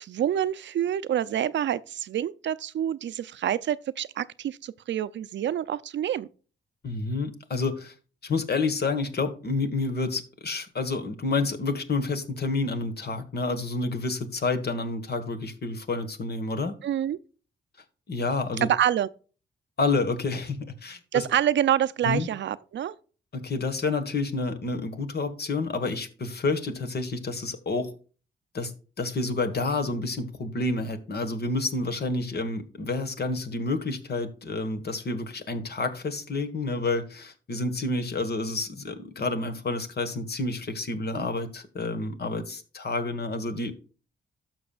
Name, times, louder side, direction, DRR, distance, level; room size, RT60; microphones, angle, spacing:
voice 1, 0.0-6.3 16.8-17.2 18.6-19.1 21.1-23.0, right 10 dB, 70° right, 0.5 m, -27 dB
voice 2, 6.8-7.9 8.2-16.7 18.1-18.7 19.8-21.2 22.0-22.3 23.3-27.9 28.5-43.7, left 3 dB, 55° left, 1.5 m, -29 dB
12.5 x 6.0 x 2.4 m
supercardioid pair, 55°, 20 cm